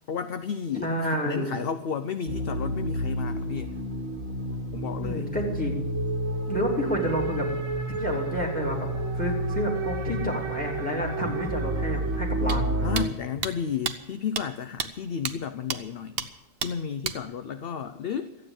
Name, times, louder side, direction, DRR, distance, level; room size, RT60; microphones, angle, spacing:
voice 1, 0.1-3.7 4.7-5.3 12.8-16.3 16.6-18.4, left 7 dB, 55° left, 11 dB, 0.8 m, -32 dB
voice 2, 0.8-1.5 5.0-5.8 6.5-7.5 8.0-8.8 9.1-12.7, equal, 5° left, -1 dB, 3.2 m, -29 dB
sound 1, 2.3-13.0, right 1 dB, 80° right, 1.9 m, -30 dB
sound 2, 12.5-12.6 13.0-13.1 13.4-13.5 13.9-14.0 14.4-14.5 14.8-14.9 15.3-15.4 15.7-15.8 16.2-16.3 16.6-16.7 17.0-17.2, right 7 dB, 50° right, 1.0 m, -30 dB
14.0 x 9.4 x 9.0 m, 0.98 s
omnidirectional pair, 1.4 m